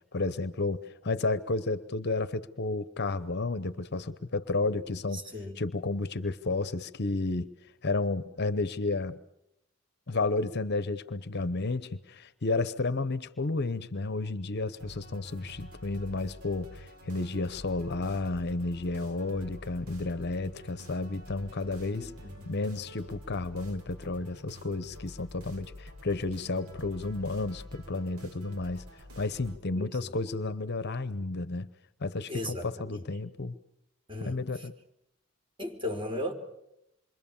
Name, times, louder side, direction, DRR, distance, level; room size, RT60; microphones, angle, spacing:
voice 1, 0.0-5.2 5.6-7.5 7.8-9.2 10.1-22.1 22.5-31.7 32.0-33.6 34.2-34.7, left 3 dB, 50° left, 14 dB, 0.9 m, -32 dB
voice 2, 5.1-5.6 22.0-22.5 29.7-30.1 32.3-33.1 34.1-34.7 35.6-36.3, left 1 dB, 25° right, 3 dB, 4.2 m, -37 dB
sound 1, 14.8-29.6, equal, 75° right, 4.5 m, -48 dB
27.5 x 24.0 x 7.2 m, 0.83 s
head